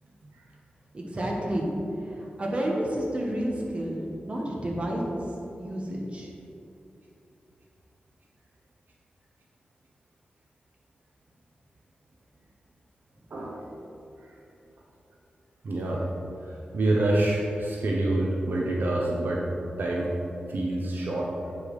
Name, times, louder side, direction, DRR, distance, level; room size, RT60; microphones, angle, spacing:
voice 1, 0.9-1.7 2.0-5.0 5.6-6.3, right 1 dB, 35° right, -2 dB, 1.5 m, -30 dB
voice 2, 13.3-13.6 15.6-16.0 16.7-19.4 19.8-20.1 20.5-21.3, right 1 dB, 70° right, -3 dB, 1.0 m, -26 dB
8.5 x 5.4 x 5.0 m, 2.8 s
wide cardioid pair, 95°, 3 cm